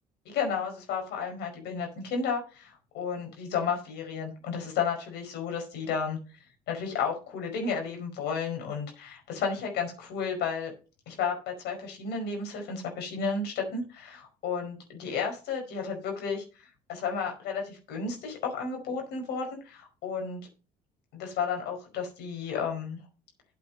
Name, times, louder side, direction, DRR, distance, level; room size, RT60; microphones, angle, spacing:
voice 1, 0.2-6.2 6.7-10.7 11.1-16.4 16.9-20.5 21.1-23.0, left 6 dB, 80° left, 2 dB, 5.0 m, -32 dB
8.7 x 8.5 x 5.4 m, 0.34 s
cardioid pair, 110°, 17 cm